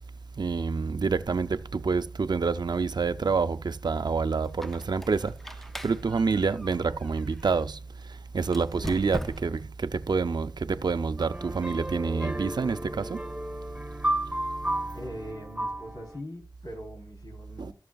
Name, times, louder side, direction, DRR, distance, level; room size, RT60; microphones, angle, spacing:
voice 1, 0.4-13.2 17.6-17.7, right 4 dB, 85° right, 0.5 m, -28 dB
Squeak, 4.5-7.6 8.4-9.7, equal, 5° left, 0.4 m, -41 dB
sound 1, 11.2-16.2, right 1 dB, 15° right, 1.2 m, -33 dB
voice 2, 14.9-17.7, equal, 75° left, 3.6 m, -41 dB
15.5 x 6.3 x 2.3 m
wide cardioid pair, 65°, 7 cm